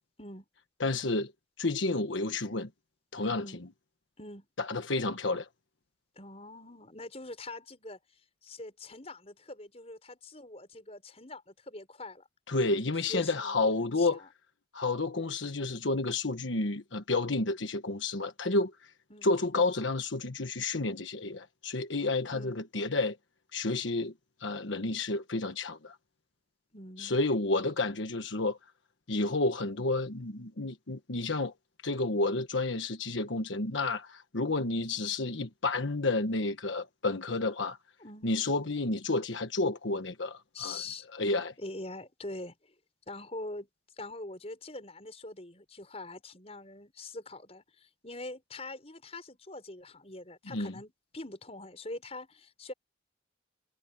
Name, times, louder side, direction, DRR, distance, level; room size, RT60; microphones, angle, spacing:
voice 1, 0.8-1.3 1.6-2.7 3.1-3.4 4.6-5.5 12.5-14.2 14.7-18.9 19.2-23.2 23.5-24.1 24.4-26.0 27.0-28.6 29.1-31.5 31.8-37.8 38.2-40.8 41.1-41.5 50.5-50.7, left 2 dB, 85° left, 1.3 m, -30 dB
voice 2, 6.2-8.0 8.4-12.3 13.0-14.3 17.4-17.5 19.1-19.3 22.3-22.6 26.7-27.2 38.0-38.3 40.5-41.1 41.6-42.6 43.1-43.7 44.0-52.7, left 2 dB, 35° left, 6.5 m, -44 dB
head